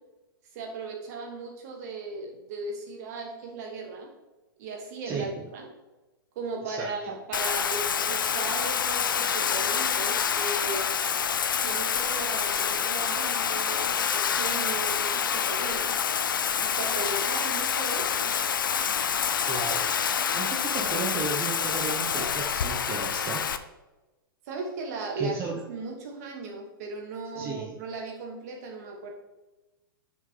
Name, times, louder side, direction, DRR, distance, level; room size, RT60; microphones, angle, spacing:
voice 1, 0.5-4.1 4.6-5.7 6.3-10.9 11.6-16.0 16.6-18.3 24.5-29.1, right 3 dB, 45° right, 1 dB, 2.6 m, -37 dB
Bathtub (filling or washing), 7.3-23.6, left 7 dB, 65° left, 0.7 m, -27 dB
voice 2, 19.4-19.9 20.3-23.4 25.2-25.6 27.3-27.8, right 4 dB, 20° right, -1 dB, 1.3 m, -34 dB
7.3 x 6.5 x 5.5 m, 1.1 s
figure-of-eight pair, 110°, 12 cm